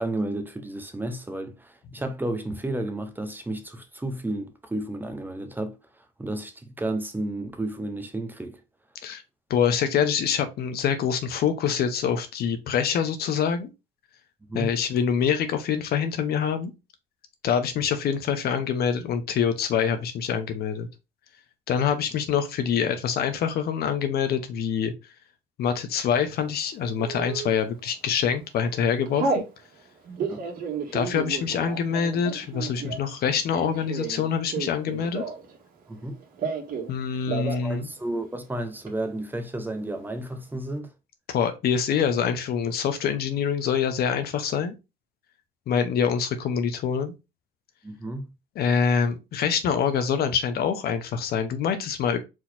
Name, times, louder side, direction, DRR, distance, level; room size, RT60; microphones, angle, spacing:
voice 1, 0.0-5.8 6.2-8.6 14.5-14.7 30.3-30.4 35.9-36.2 37.6-40.9 47.8-48.2, right 1 dB, 10° right, 0.9 m, -32 dB
voice 2, 9.5-13.7 14.5-16.7 17.4-20.9 21.7-24.9 25.6-29.4 30.9-35.2 36.9-37.9 41.3-44.7 45.7-47.1 48.5-52.2, left 7 dB, 65° left, 1.1 m, -25 dB
Telephone, 27.0-27.5 28.1-28.3 28.6-29.5 30.0-35.6 35.8-36.9 37.2-37.7 38.0-38.1 38.3-38.9, right 4 dB, 55° right, 1.8 m, -32 dB
4.7 x 4.1 x 2.8 m
cardioid pair, 110°, 17 cm